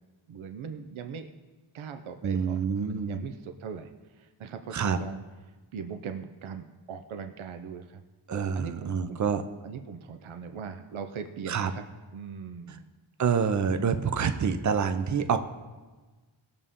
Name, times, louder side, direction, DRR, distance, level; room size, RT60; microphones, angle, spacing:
voice 1, 0.3-1.3 1.7-5.2 5.7-8.0 8.5-9.2 9.6-11.8 12.1-12.8, right 6 dB, 80° right, 7 dB, 0.8 m, -40 dB
voice 2, 2.2-3.2 4.7-5.0 8.3-9.4 11.5-11.7 12.7-12.8 13.2-15.4, right 6 dB, 40° right, 9 dB, 0.6 m, -27 dB
19.0 x 6.8 x 3.7 m, 1.3 s
wide cardioid pair, 150°, 48 cm